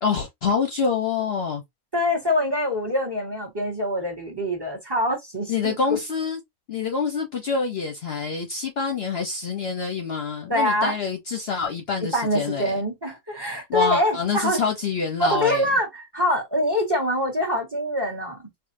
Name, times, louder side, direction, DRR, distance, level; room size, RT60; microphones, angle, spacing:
voice 1, 0.0-1.6 5.5-6.4 6.7-12.8 13.7-15.7, left 5 dB, 55° left, 0.8 m, -26 dB
voice 2, 1.9-6.0 10.5-10.9 12.1-14.6 15.2-18.4, left 1 dB, 20° right, 1.2 m, -24 dB
4.8 x 2.5 x 2.5 m
omnidirectional pair, 1.5 m